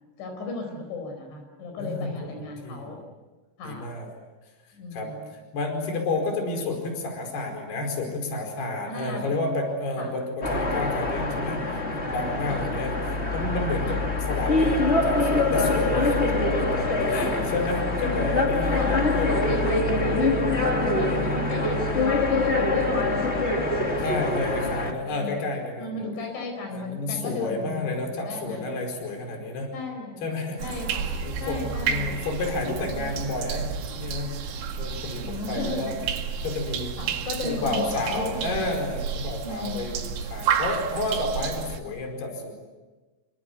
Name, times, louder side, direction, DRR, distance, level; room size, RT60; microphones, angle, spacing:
voice 1, 0.2-3.0 3.6-3.9 4.7-5.3 8.9-9.3 10.0-10.1 12.5-12.7 13.9-14.1 17.1-17.4 18.0-18.2 18.7-23.7 24.0-24.2 25.1-25.4 25.8-28.8 29.7-30.2 30.6-31.1 31.4-32.2 32.9-33.2 35.1-36.0 37.0-38.7 39.4-40.1, left 3 dB, 80° left, 3 dB, 7.1 m, -35 dB
voice 2, 1.8-2.3 2.6-2.9 3.6-4.1 4.9-5.1 5.5-14.0 14.3-19.7 20.9-21.4 24.0-26.1 26.7-29.7 30.2-30.8 31.2-34.4 34.8-35.9 36.4-37.0 37.4-42.5, left 2 dB, 60° left, 3 dB, 6.8 m, -31 dB
sound 1, 10.4-24.9, left 2 dB, 25° left, 1.5 m, -24 dB
sound 2, 30.6-41.8, right 7 dB, 90° right, 4.4 m, -31 dB
29.0 x 25.5 x 8.1 m, 1.2 s
omnidirectional pair, 5.2 m